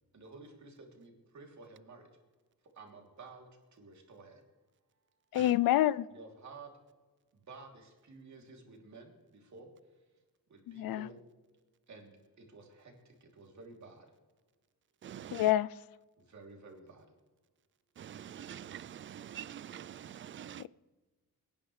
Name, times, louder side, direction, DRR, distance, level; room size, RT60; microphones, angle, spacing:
voice 1, 0.1-2.1 2.7-4.4 6.1-6.7 7.3-9.7 10.5-11.2 11.9-12.1 12.4-14.1 16.2-17.0, right 3 dB, 55° right, 3.1 m, -52 dB
voice 2, 5.3-6.1 10.7-11.1 15.3-15.7 20.6-20.7, left 13 dB, 85° left, 0.5 m, -27 dB
voice 3, 15.0-15.5 18.0-20.7, right 10 dB, 35° right, 0.4 m, -45 dB
25.0 x 10.5 x 3.3 m
cardioid pair, 105°, 34 cm